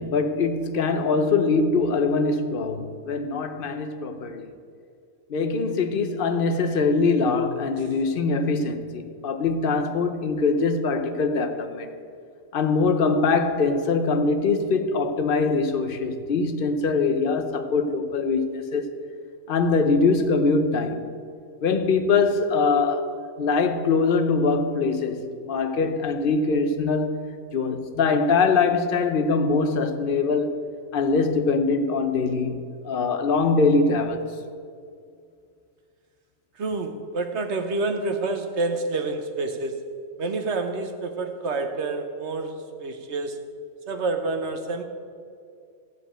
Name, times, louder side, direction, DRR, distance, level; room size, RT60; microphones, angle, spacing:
voice 1, 0.0-4.5 5.3-11.9 12.5-18.9 19.5-21.2 21.6-27.2 27.5-30.5 30.9-34.3, left 4 dB, 50° left, 0.8 m, -23 dB
voice 2, 36.6-39.9 40.2-43.4 43.9-44.8, right 3 dB, 55° right, 1.1 m, -28 dB
14.5 x 5.1 x 8.8 m
omnidirectional pair, 1.5 m